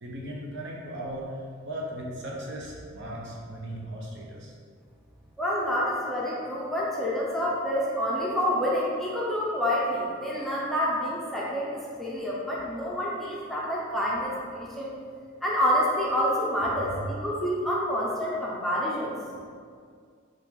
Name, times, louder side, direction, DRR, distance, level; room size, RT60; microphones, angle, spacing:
voice 1, 0.0-1.2 1.6-4.5 16.8-17.1, right 1 dB, 60° right, -3 dB, 0.7 m, -37 dB
voice 2, 5.4-14.9 15.4-19.1, equal, ahead, -6 dB, 0.5 m, -28 dB
4.4 x 2.5 x 3.6 m, 2.1 s
head